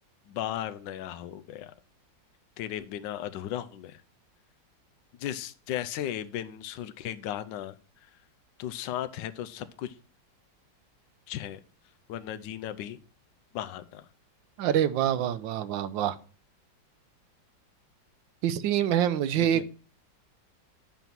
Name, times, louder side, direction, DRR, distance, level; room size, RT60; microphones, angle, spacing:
voice 1, 0.3-1.7 2.6-4.0 5.2-7.8 8.0-8.2 8.6-10.0 11.3-11.6 12.1-13.0 13.5-14.1 19.4-19.7, left 11 dB, 75° left, 11 dB, 1.3 m, -36 dB
voice 2, 14.6-16.2 18.4-19.6, right 10 dB, 85° right, 15 dB, 1.4 m, -26 dB
9.2 x 5.4 x 5.8 m, 0.39 s
omnidirectional pair, 2.0 m